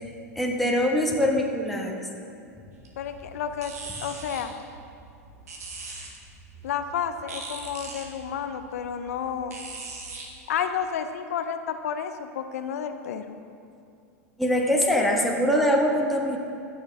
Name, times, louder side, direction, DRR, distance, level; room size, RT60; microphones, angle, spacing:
voice 1, 0.3-2.0 14.4-16.4, equal, ahead, -2 dB, 1.4 m, -23 dB
sound 1, 2.7-10.3, right 3 dB, 85° right, 1.6 m, -42 dB
voice 2, 3.0-3.7 4.0-4.5 6.6-9.6 10.5-13.4, left 8 dB, 75° left, 9 dB, 0.5 m, -31 dB
15.5 x 6.4 x 3.5 m, 2.6 s
hypercardioid pair, 105°, 8 cm